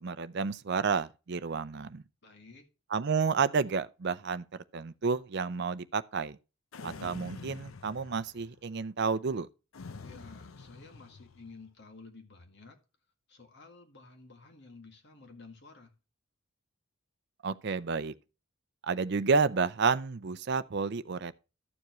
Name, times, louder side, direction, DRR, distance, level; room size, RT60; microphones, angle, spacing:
voice 1, 0.0-2.0 2.9-4.4 4.7-6.4 6.8-9.5 17.4-18.1 18.8-21.3, right 5 dB, 55° right, 0.5 m, -30 dB
voice 2, 2.2-2.7 10.0-12.8 13.3-15.9, left 3 dB, 55° left, 2.0 m, -52 dB
sound 1, 6.7-8.6 9.7-11.5, left 4 dB, 75° left, 0.6 m, -46 dB
13.0 x 7.1 x 3.0 m
head